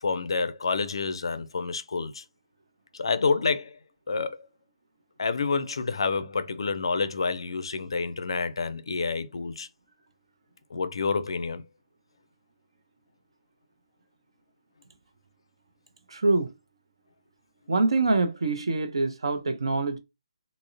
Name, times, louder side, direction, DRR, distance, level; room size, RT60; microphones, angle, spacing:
voice 1, 0.0-2.2 2.9-3.8 4.1-4.5 5.2-9.7 10.7-11.6, left 4 dB, 55° left, 0.4 m, -28 dB
voice 2, 16.1-16.5 17.7-20.0, right 3 dB, 55° right, 0.6 m, -25 dB
3.6 x 2.0 x 2.6 m
figure-of-eight pair, 145°, 3 cm